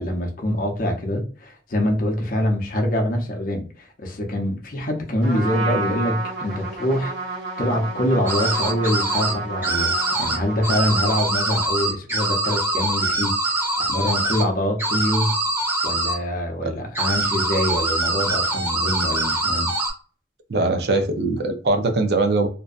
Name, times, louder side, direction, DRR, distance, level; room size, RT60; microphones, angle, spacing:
voice 1, 0.0-7.1 7.6-15.3 15.8-19.7, left 1 dB, 50° left, 0.6 m, -24 dB
Trumpet, 5.2-11.4, right 3 dB, 90° right, 1.0 m, -31 dB
sound 1, 8.3-9.3 9.6-10.4 10.6-14.4 14.8-16.2 16.9-19.9, right 2 dB, 10° right, 0.8 m, -23 dB
voice 2, 20.5-22.5, right 2 dB, 65° right, 0.5 m, -21 dB
2.6 x 2.1 x 2.4 m
head